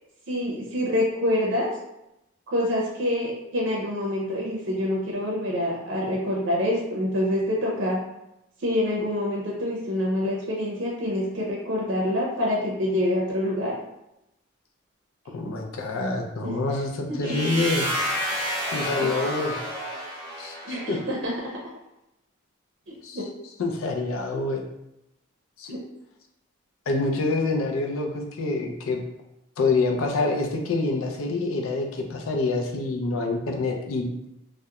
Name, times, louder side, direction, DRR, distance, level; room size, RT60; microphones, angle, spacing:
voice 1, 0.3-1.7 2.5-8.0 8.6-13.7 16.4-16.5 17.1-17.3 19.0-19.1 20.6-21.6 22.9-23.3 25.7-25.8, left 1 dB, 65° right, -3 dB, 0.5 m, -26 dB
voice 2, 15.3-17.9 18.2-18.3 18.7-19.6 20.4-21.0 23.0-23.2 23.6-24.6 25.6-25.7 26.9-29.0 29.6-34.1, left 3 dB, 85° left, 2 dB, 0.4 m, -26 dB
sound 1, 17.2-21.1, equal, 15° right, 0.9 m, -30 dB
2.3 x 2.1 x 2.8 m, 0.86 s
head